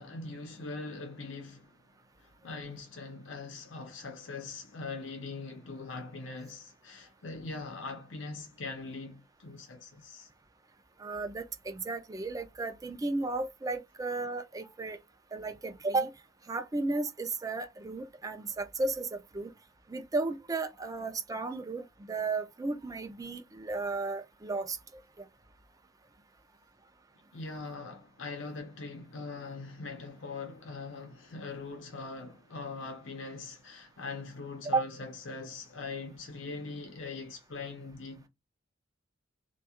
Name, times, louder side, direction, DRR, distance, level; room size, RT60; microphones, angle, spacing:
voice 1, 0.0-1.8 2.2-10.3 27.3-38.3, left 3 dB, 85° left, 0.7 m, -42 dB
voice 2, 11.0-15.0 15.3-16.1 16.5-19.1 19.3-19.5 19.9-24.8 25.2-25.3 34.7-34.8, right 3 dB, 20° right, 0.4 m, -34 dB
2.3 x 2.3 x 2.8 m
head